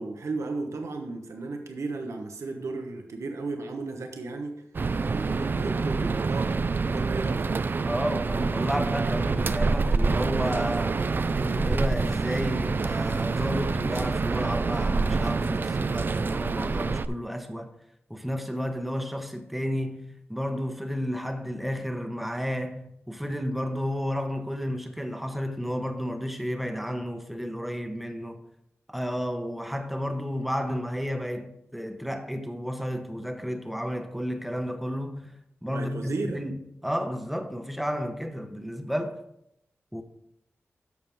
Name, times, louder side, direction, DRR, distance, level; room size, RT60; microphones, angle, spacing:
voice 1, 0.0-4.6 5.0-7.5 35.6-36.5, right 3 dB, 85° right, 1.1 m, -34 dB
sound 1, 4.7-17.1, right 4 dB, 45° right, 0.4 m, -26 dB
voice 2, 7.8-11.1 11.3-17.7 18.1-28.4 28.9-39.2 39.9-40.0, equal, ahead, 0.9 m, -32 dB
11.5 x 6.9 x 3.5 m
wide cardioid pair, 120°, 5 cm